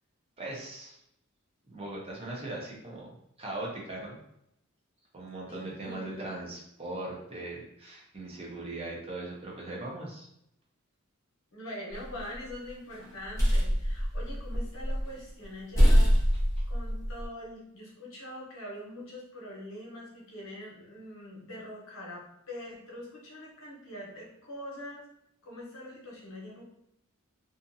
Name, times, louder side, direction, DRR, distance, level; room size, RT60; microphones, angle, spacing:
voice 1, 0.4-1.0 1.7-3.1 3.4-4.2 5.1-10.3, right 2 dB, 25° right, -3 dB, 0.6 m, -39 dB
voice 2, 5.5-6.3 11.5-16.2 16.7-25.0 25.4-26.6, left 1 dB, 65° left, -4 dB, 0.9 m, -43 dB
sound 1, 11.9-12.5 13.0-15.1 15.4-15.5 15.7-17.3, equal, 15° left, 0.8 m, -24 dB
2.6 x 2.5 x 2.6 m, 0.76 s
head